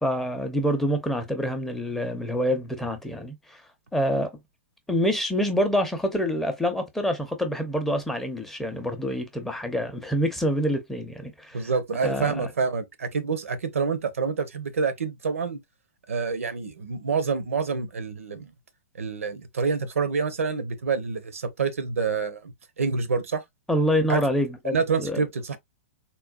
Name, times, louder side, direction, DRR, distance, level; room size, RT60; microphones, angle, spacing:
voice 1, 0.0-3.6 3.9-4.3 4.9-11.6 12.0-12.3 23.7-25.2, equal, 5° left, 0.5 m, -26 dB
voice 2, 11.5-15.6 16.1-18.5 18.9-23.4 24.1-24.2 24.7-25.6, right 5 dB, 75° right, 0.6 m, -27 dB
3.8 x 2.2 x 2.2 m
figure-of-eight pair, 110°, 8 cm